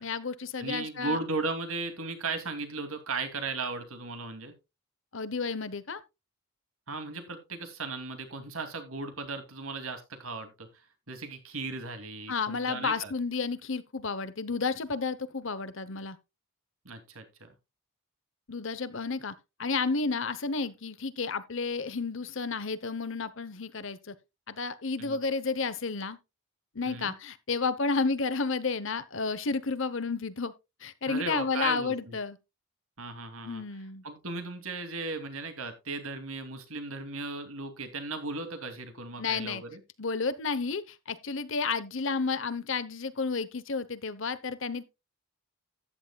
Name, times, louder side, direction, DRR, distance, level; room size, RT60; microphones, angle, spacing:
voice 1, 0.0-1.2 5.1-6.0 12.3-16.2 18.5-24.1 24.5-26.2 26.7-30.5 30.8-32.4 33.4-34.0 39.2-39.6 40.0-44.8, left 4 dB, 60° left, 0.9 m, -31 dB
voice 2, 0.6-4.5 6.9-10.7 11.1-13.1 16.8-17.5 25.0-25.2 26.8-27.1 31.1-32.2 33.0-33.6 34.0-39.8, right 3 dB, 70° right, 2.6 m, -36 dB
14.0 x 10.0 x 2.3 m
head